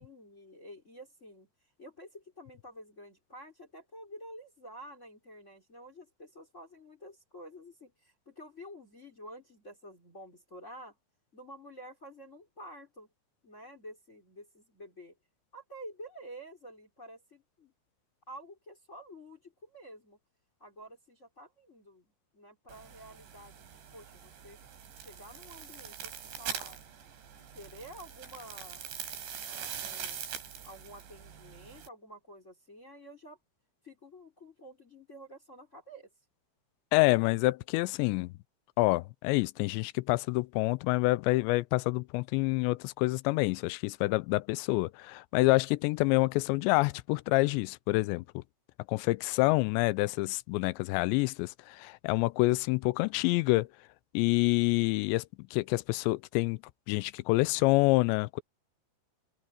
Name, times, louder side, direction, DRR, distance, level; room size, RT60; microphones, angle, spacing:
voice 1, 0.0-1.5 1.8-11.0 11.3-13.1 13.4-15.2 15.5-17.7 18.3-20.2 20.6-24.6 25.0-26.8 27.4-28.9 29.4-30.2 30.6-33.4 33.8-36.1, equal, 20° left, 3.1 m, -50 dB
sound 1, 22.7-31.9, right 8 dB, 85° right, 5.8 m, -43 dB
voice 2, 36.9-38.3 38.8-48.4 48.9-53.7 54.1-55.3 55.5-56.6 56.9-58.4, left 22 dB, 85° left, 2.8 m, -27 dB
omnidirectional pair, 5.1 m